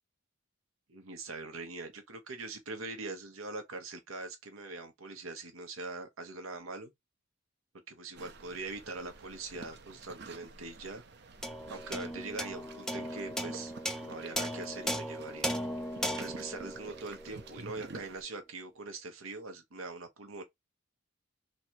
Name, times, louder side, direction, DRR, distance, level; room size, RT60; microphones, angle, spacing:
voice 1, 0.9-6.9 7.9-11.0 11.7-13.7 14.0-15.5 16.2-20.4, right 3 dB, 85° right, 1.0 m, -42 dB
sound 1, 8.1-18.2, right 4 dB, 55° right, 0.6 m, -50 dB
sound 2, 11.4-18.0, equal, 5° left, 0.5 m, -37 dB
3.1 x 2.8 x 4.5 m
head